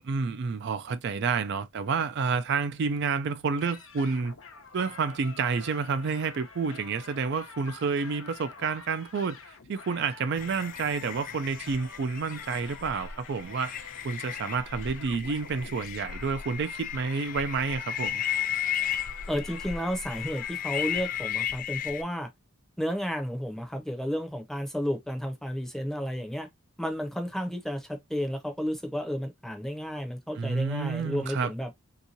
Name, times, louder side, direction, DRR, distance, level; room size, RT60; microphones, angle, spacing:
voice 1, 0.0-4.4 4.7-18.2 30.4-31.5, right 5 dB, 55° right, 0.4 m, -29 dB
sound 1, 3.6-21.3, left 5 dB, 65° left, 0.7 m, -48 dB
sound 2, 10.4-22.0, left 9 dB, 40° left, 0.3 m, -35 dB
voice 2, 19.3-22.3 22.8-26.5 26.8-31.7, equal, ahead, 0.6 m, -32 dB
3.6 x 2.9 x 2.7 m
head